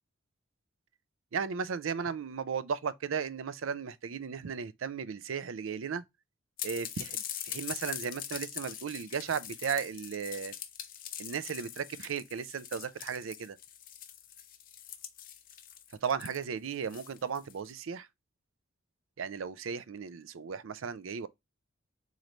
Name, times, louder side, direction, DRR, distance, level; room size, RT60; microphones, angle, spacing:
voice 1, 1.3-6.0 6.6-10.5 11.2-13.6 16.0-18.1 19.2-21.3, right 6 dB, 75° right, 0.4 m, -35 dB
sound 1, 6.6-17.7, left 10 dB, 45° left, 0.5 m, -43 dB
3.9 x 3.1 x 3.1 m
head